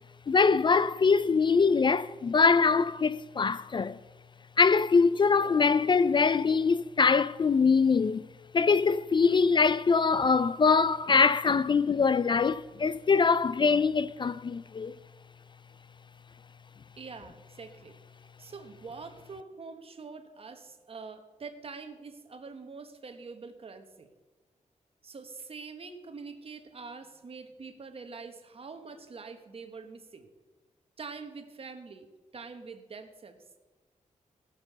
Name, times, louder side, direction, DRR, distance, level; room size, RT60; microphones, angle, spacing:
voice 1, 0.3-4.0 4.6-8.2 8.5-14.9, left 5 dB, 35° left, 0.4 m, -23 dB
voice 2, 17.0-17.9 18.4-24.1 25.0-30.3 31.0-32.1 32.3-33.6, right 4 dB, 45° right, 1.3 m, -45 dB
16.5 x 6.8 x 6.8 m
wide cardioid pair, 110°, 13 cm